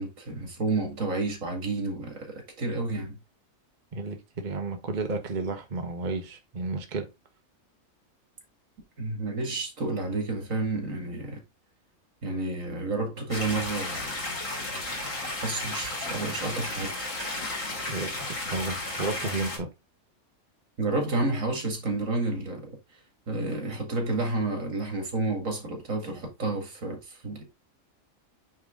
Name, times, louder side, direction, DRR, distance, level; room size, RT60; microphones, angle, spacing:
voice 1, 0.0-3.2 9.0-11.4 12.2-14.1 15.4-17.0 20.8-22.7 23.3-27.4, right 2 dB, 75° right, 2.5 m, -30 dB
voice 2, 3.9-7.1 17.9-19.7, right 3 dB, 35° right, 1.2 m, -32 dB
sound 1, 13.3-19.6, left 2 dB, 70° left, 3.1 m, -33 dB
8.8 x 3.9 x 3.7 m
omnidirectional pair, 1.4 m